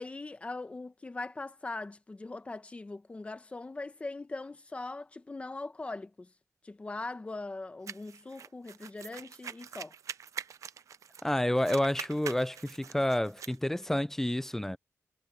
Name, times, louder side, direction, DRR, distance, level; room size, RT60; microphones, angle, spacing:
voice 1, 0.0-6.3 6.6-9.9, left 3 dB, 25° left, 1.0 m, -41 dB
sound 1, 7.9-11.3 11.6-13.6, right 8 dB, 75° right, 0.6 m, -44 dB
voice 2, 11.2-14.8, left 1 dB, 5° left, 0.5 m, -29 dB
wide cardioid pair, 140°, 5 cm